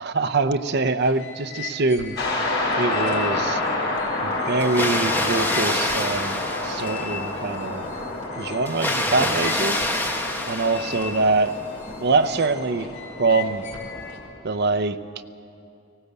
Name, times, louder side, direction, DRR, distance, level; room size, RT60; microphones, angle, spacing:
voice 1, 0.0-2.2 2.7-3.6 4.2-7.9 8.4-9.9 10.5-11.6 12.0-12.9 13.2-13.7 14.4-15.0, right 3 dB, 55° right, 11 dB, 0.7 m, -24 dB
sound 1, 1.0-14.2, left 6 dB, 80° left, 4.0 m, -40 dB
sound 2, 2.2-14.2, left 2 dB, 55° left, 6.3 m, -29 dB
Water, 4.6-7.4 8.7-11.5, left 1 dB, 10° left, 1.4 m, -27 dB
19.0 x 17.5 x 8.2 m, 2.7 s
head